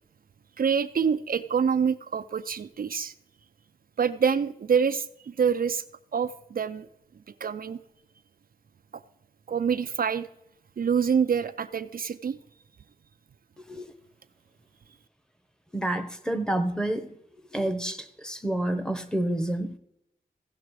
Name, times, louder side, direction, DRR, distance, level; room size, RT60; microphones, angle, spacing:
voice 1, 0.6-3.1 4.0-5.8 6.1-6.9 7.4-7.8 8.9-9.0 9.5-10.3 10.8-12.4, right 6 dB, 65° right, 0.4 m, -26 dB
voice 2, 15.7-17.2 17.5-19.8, right 1 dB, 5° left, 1.0 m, -29 dB
16.0 x 6.0 x 4.8 m
wide cardioid pair, 105°, 16 cm